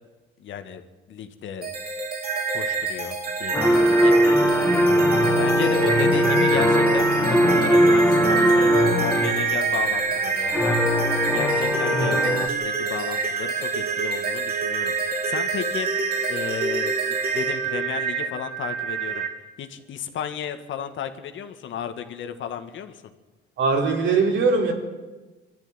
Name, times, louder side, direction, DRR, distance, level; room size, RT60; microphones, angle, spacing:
voice 1, 0.4-0.8 1.1-1.7 2.5-4.2 5.3-10.9 11.3-15.9 16.3-19.3 19.6-23.0, left 8 dB, 75° left, 8 dB, 2.1 m, -34 dB
sound 1, 1.6-19.3, right 5 dB, 50° right, 3.9 m, -26 dB
sound 2, 3.5-9.7 10.5-12.5, equal, 10° left, 2.5 m, -20 dB
voice 2, 4.9-5.3 23.6-24.7, right 4 dB, 75° right, 1 dB, 4.5 m, -22 dB
24.0 x 13.5 x 10.0 m, 1.2 s
cardioid pair, 90°, 20 cm